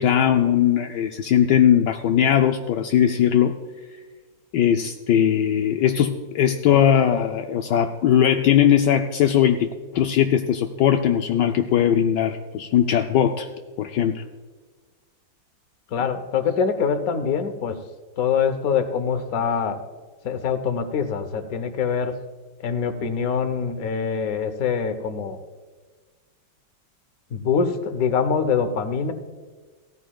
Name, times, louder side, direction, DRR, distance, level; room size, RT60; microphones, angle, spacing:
voice 1, 0.0-3.6 4.5-13.5 13.8-14.2, left 9 dB, 75° left, 5 dB, 1.2 m, -19 dB
voice 2, 15.9-17.8 18.2-19.8 20.2-22.2 22.6-25.4 27.3-29.1, left 6 dB, 55° left, 9 dB, 1.2 m, -24 dB
16.5 x 14.0 x 2.3 m, 1.4 s
omnidirectional pair, 2.0 m